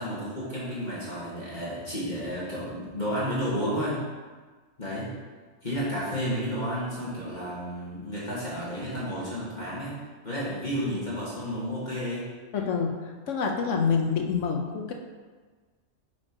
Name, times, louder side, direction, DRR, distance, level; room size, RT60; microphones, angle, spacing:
voice 1, 0.0-4.0 4.8-5.1 5.6-9.9 10.2-12.2, equal, 35° left, -8 dB, 1.8 m, -31 dB
voice 2, 12.5-14.9, left 5 dB, 70° left, 2 dB, 1.1 m, -27 dB
8.7 x 6.2 x 3.0 m, 1.4 s
omnidirectional pair, 1.3 m